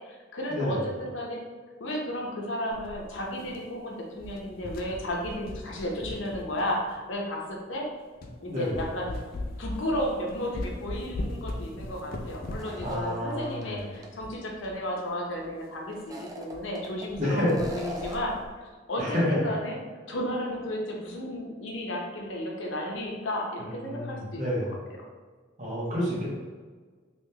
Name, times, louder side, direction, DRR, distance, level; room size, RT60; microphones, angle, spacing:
voice 1, 0.0-1.4 1.8-7.9 8.4-9.2 9.6-19.8 20.1-24.6 25.0-25.1, equal, 75° left, -1 dB, 0.8 m, -33 dB
voice 2, 0.5-0.8 8.5-8.8 12.8-13.8 17.2-17.6 19.0-19.5 23.6-24.8 25.6-26.3, left 1 dB, 40° right, -7 dB, 1.2 m, -29 dB
sound 1, 2.7-3.8 4.1-7.1 7.7-7.8 8.2-8.4 8.7-14.8 15.1-15.2 15.4-15.5 15.9-16.1 16.5-16.7 16.9-17.3 17.6-18.5, left 1 dB, 50° left, 0.4 m, -39 dB
sound 2, 12.6-13.6 14.0-14.1 15.9-17.1 17.5-18.4, right 1 dB, 20° right, 0.3 m, -41 dB
3.4 x 3.1 x 2.9 m, 1.5 s
head